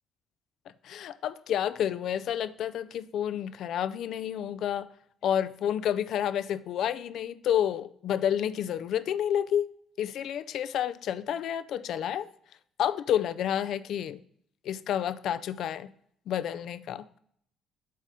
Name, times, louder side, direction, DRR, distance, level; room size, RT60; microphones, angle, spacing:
voice 1, 0.8-4.9 5.2-9.7 10.0-12.3 12.8-14.2 14.6-15.9 16.3-17.0, left 10 dB, 70° left, 0.4 m, -30 dB
8.4 x 4.2 x 5.0 m
supercardioid pair, 75°, 0 cm